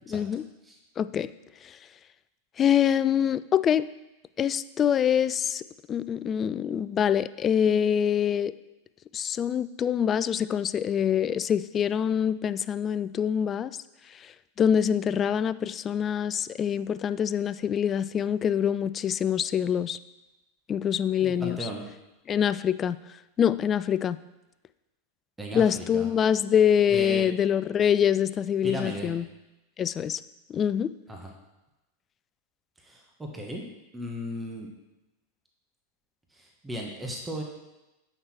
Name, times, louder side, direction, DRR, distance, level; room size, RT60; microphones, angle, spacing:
voice 1, 0.1-0.4 1.0-1.3 2.6-3.9 4.4-5.6 5.9-8.5 9.1-13.7 14.6-20.0 20.7-21.7 22.3-23.0 23.4-24.2 25.5-29.3 29.8-30.2 30.5-30.9, left 8 dB, 30° left, 15 dB, 0.3 m, -25 dB
voice 2, 21.2-21.8 25.4-26.1 26.9-27.3 28.6-29.1 31.1-31.3 32.8-33.6 33.9-34.7 36.3-37.4, equal, 10° right, 1 dB, 1.3 m, -36 dB
8.0 x 5.8 x 4.4 m, 0.99 s
hypercardioid pair, 95°, 0 cm